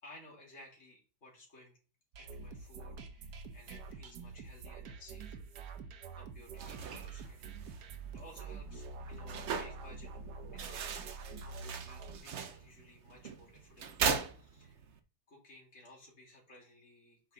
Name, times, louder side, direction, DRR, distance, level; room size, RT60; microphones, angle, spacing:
voice 1, 0.0-1.8 2.2-5.5 6.1-7.8 8.1-10.1 10.5-14.0 14.3-14.8 15.3-17.3, left 1 dB, 40° left, -4 dB, 3.4 m, -57 dB
sound 1, 2.1-12.2, right 4 dB, 70° right, 1.4 m, -46 dB
sound 2, 6.4-15.0, right 6 dB, 55° right, 0.8 m, -40 dB
7.3 x 5.6 x 3.7 m, 0.36 s
omnidirectional pair, 1.9 m